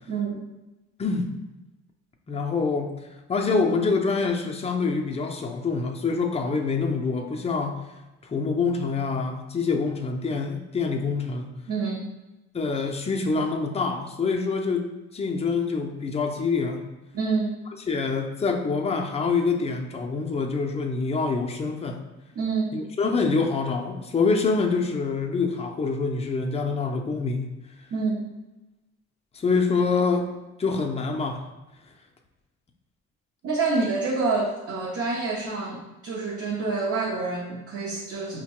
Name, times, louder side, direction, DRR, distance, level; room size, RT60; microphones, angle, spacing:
voice 1, 0.1-0.5 11.7-12.1 17.1-17.5 22.4-22.7 27.9-28.3 33.4-38.4, right 4 dB, 50° right, -3 dB, 0.6 m, -27 dB
voice 2, 2.3-2.9 3.3-7.8 8.2-11.5 12.5-16.8 17.9-22.0 22.7-27.5 29.3-30.3 30.6-31.5, left 4 dB, 20° left, 3 dB, 0.4 m, -26 dB
4.4 x 2.2 x 2.9 m, 1.0 s
cardioid pair, 90°, 30 cm